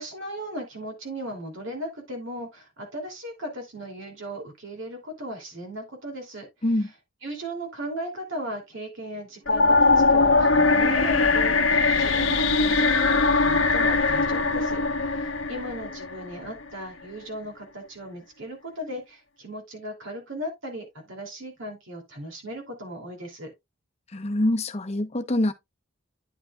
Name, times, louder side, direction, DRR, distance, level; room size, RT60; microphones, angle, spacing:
voice 1, 0.0-6.5 7.2-23.5, equal, 70° right, 2.8 m, -37 dB
sound 1, 9.5-16.6, left 3 dB, 80° left, 1.2 m, -21 dB
voice 2, 24.1-25.5, left 1 dB, 30° left, 0.9 m, -25 dB
10.0 x 6.0 x 2.4 m
head